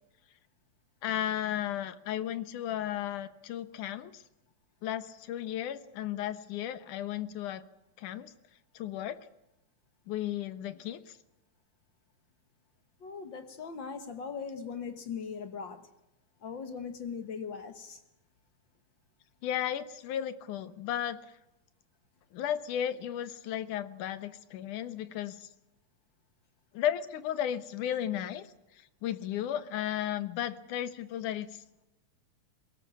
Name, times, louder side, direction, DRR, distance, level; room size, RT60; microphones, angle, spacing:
voice 1, 1.0-4.2 4.8-7.6 8.0-8.3 8.7-9.2 10.1-11.2 19.4-21.2 22.3-25.5 26.7-28.4 29.0-31.6, left 11 dB, 90° left, 12 dB, 2.6 m, -34 dB
voice 2, 13.0-15.8 16.4-18.0, left 6 dB, 50° left, 9 dB, 1.7 m, -39 dB
22.0 x 18.0 x 8.5 m, 0.91 s
omnidirectional pair, 3.5 m